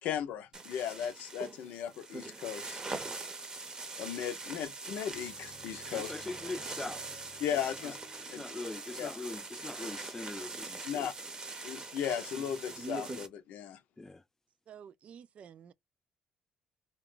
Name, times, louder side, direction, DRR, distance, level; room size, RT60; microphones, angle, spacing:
voice 1, 0.0-2.8 4.0-6.1 7.4-8.0 8.3-8.4 9.0-9.1 10.8-11.1 11.6-13.8, left 9 dB, 85° left, 0.6 m, -36 dB
sound 1, 0.5-13.3, right 3 dB, 30° right, 0.7 m, -42 dB
sound 2, 5.1-9.2, right 2 dB, 75° right, 0.9 m, -56 dB
voice 2, 5.9-7.1 7.8-7.9 8.4-11.1 14.0-14.2, left 3 dB, 15° left, 0.4 m, -42 dB
voice 3, 14.7-15.7, right 8 dB, 55° right, 0.3 m, -51 dB
2.3 x 2.2 x 3.6 m
cardioid pair, 95°, 3 cm